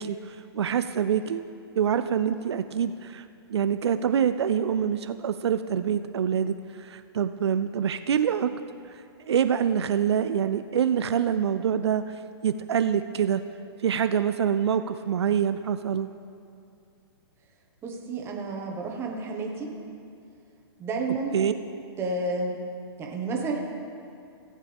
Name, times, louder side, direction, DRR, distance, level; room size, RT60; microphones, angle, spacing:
voice 1, 0.0-1.5 1.8-3.2 3.5-8.5 9.3-13.4 13.8-16.1 21.3-21.5, right 8 dB, 80° right, 10 dB, 0.4 m, -25 dB
voice 2, 17.8-19.7 20.8-21.4 22.0-22.6 23.0-23.6, right 3 dB, 20° right, 0 dB, 1.3 m, -30 dB
17.0 x 7.4 x 3.5 m, 2.5 s
hypercardioid pair, 140°, 14 cm